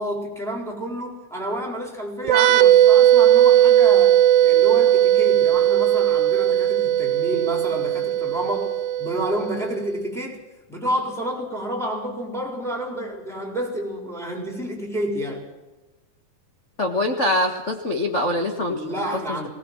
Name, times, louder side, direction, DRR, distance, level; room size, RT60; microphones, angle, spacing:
voice 1, 0.0-4.2 4.4-8.7 9.0-10.4 10.7-15.4 18.7-19.5, right 1 dB, ahead, 1 dB, 3.7 m, -29 dB
sound 1, 2.2-9.8, right 11 dB, 85° right, 2.6 m, -17 dB
voice 2, 16.8-18.8 19.3-19.5, left 1 dB, 90° left, 3 dB, 0.6 m, -23 dB
19.0 x 18.5 x 7.5 m, 1.1 s
omnidirectional pair, 3.9 m